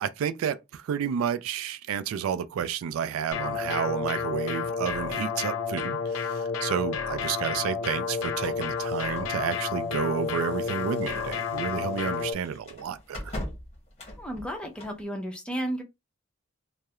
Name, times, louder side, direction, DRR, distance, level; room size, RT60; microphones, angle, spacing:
voice 1, 0.0-13.4, right 8 dB, 80° right, 0.3 m, -31 dB
sound 1, 3.3-12.3, left 5 dB, 80° left, 0.4 m, -30 dB
sound 2, 8.2-15.0, left 1 dB, 30° left, 0.8 m, -43 dB
voice 2, 14.2-15.8, right 1 dB, 5° left, 0.6 m, -33 dB
2.3 x 2.0 x 2.8 m
head